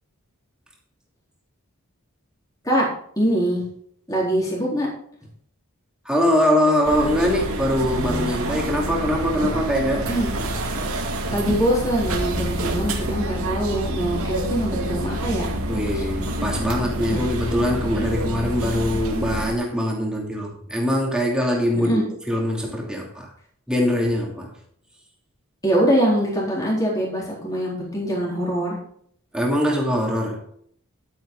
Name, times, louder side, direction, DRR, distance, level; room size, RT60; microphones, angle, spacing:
voice 1, 3.2-3.6 4.1-4.9 10.1-10.3 11.3-15.5 16.0-16.1 17.1-17.2 21.8-22.1 25.6-28.8, right 1 dB, 15° left, -4 dB, 3.9 m, -23 dB
voice 2, 6.0-10.1 15.7-23.3 23.7-24.5 29.3-30.4, equal, 5° right, -1 dB, 2.8 m, -22 dB
sound 1, 6.8-19.5, right 1 dB, 80° right, 2.4 m, -27 dB
11.5 x 9.3 x 3.9 m, 0.63 s
head